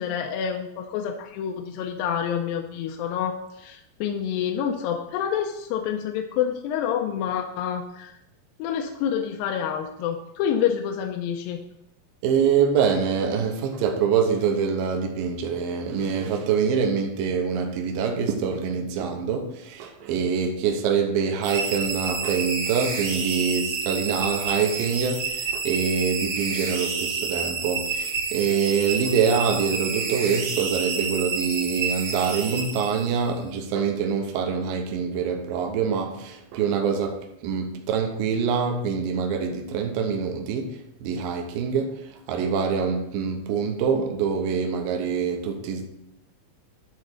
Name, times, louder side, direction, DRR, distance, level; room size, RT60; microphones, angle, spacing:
voice 1, 0.0-8.2 8.6-11.6, left 8 dB, 80° left, 2.3 m, -28 dB
voice 2, 12.2-45.8, right 6 dB, 75° right, 2.6 m, -25 dB
sound 1, 21.4-33.3, right 5 dB, 55° right, 1.9 m, -29 dB
10.5 x 4.0 x 6.5 m
omnidirectional pair, 4.3 m